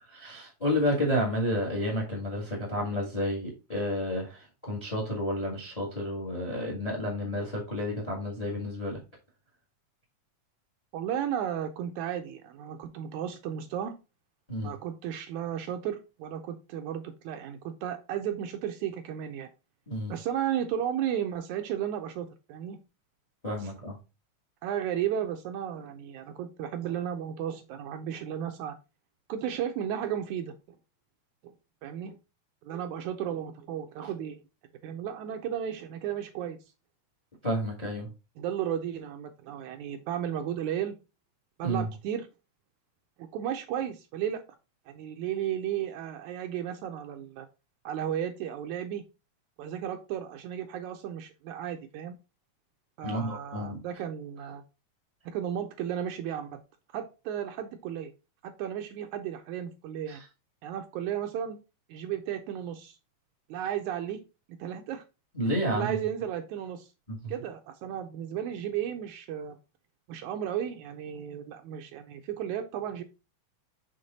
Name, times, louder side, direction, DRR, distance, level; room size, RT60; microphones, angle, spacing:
voice 1, 0.0-9.0 14.5-14.7 19.9-20.1 23.4-24.0 37.4-38.1 41.6-41.9 53.0-53.8 60.1-60.2 65.3-66.0 67.1-67.3, equal, 20° left, 1 dB, 1.0 m, -31 dB
voice 2, 10.9-13.9 14.6-19.5 20.1-22.8 23.6-23.7 24.6-28.8 29.3-30.5 31.8-32.2 32.6-34.4 34.8-36.6 38.4-40.9 41.6-42.3 43.2-44.4 44.9-47.5 47.9-49.0 49.6-52.2 53.0-54.6 55.3-56.6 56.9-58.1 58.4-60.2 60.6-61.6 61.9-63.0 63.5-64.2 64.5-65.0 65.7-66.9 67.3-69.6 70.1-73.0, right 10 dB, 75° right, 7 dB, 1.9 m, -34 dB
6.5 x 3.8 x 4.0 m, 0.28 s
omnidirectional pair, 3.7 m